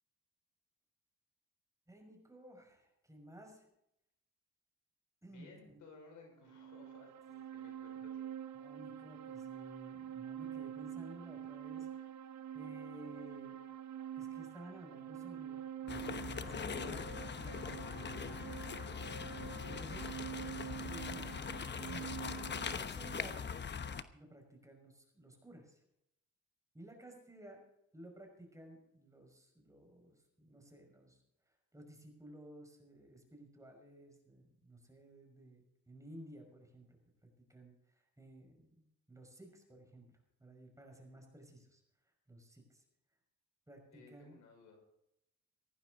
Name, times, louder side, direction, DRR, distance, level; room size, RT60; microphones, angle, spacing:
voice 1, 1.9-3.7 5.2-5.8 8.0-8.1 8.5-12.3 12.5-13.6 14.2-18.2 19.1-20.1 20.7-21.3 21.9-22.3 22.7-23.5 24.1-25.8 26.7-27.6 27.9-40.1 40.4-42.8 43.7-44.4, right 1 dB, 10° right, 2 dB, 5.8 m, -55 dB
voice 2, 5.3-8.2 43.9-44.8, left 4 dB, 80° left, 2 dB, 5.8 m, -59 dB
sound 1, 6.4-22.7, right 9 dB, 65° right, 1.0 m, -46 dB
sound 2, 15.9-24.0, left 6 dB, 35° left, 1.1 m, -42 dB
17.5 x 14.5 x 4.0 m, 0.81 s
cardioid pair, 90°, 30 cm